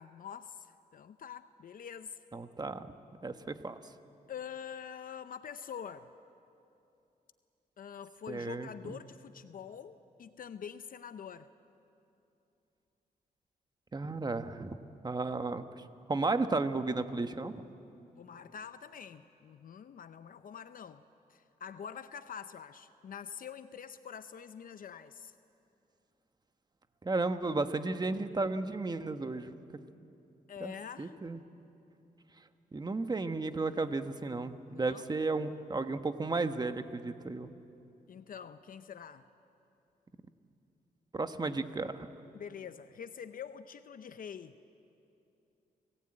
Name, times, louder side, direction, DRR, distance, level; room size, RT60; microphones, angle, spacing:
voice 1, 0.0-2.2 4.3-6.1 7.8-11.5 18.2-21.0 21.3-25.3 30.5-31.1 34.7-35.0 38.1-39.3 42.3-44.5, left 7 dB, 60° left, 11 dB, 0.7 m, -45 dB
voice 2, 2.3-2.9 3.2-3.8 8.3-9.0 13.9-14.8 15.0-15.7 16.1-17.5 27.0-29.5 30.6-30.7 31.0-31.4 32.7-37.5 41.1-42.1, right 3 dB, 25° right, 9 dB, 1.2 m, -33 dB
29.5 x 18.5 x 8.9 m, 2.8 s
cardioid pair, 95°, 16 cm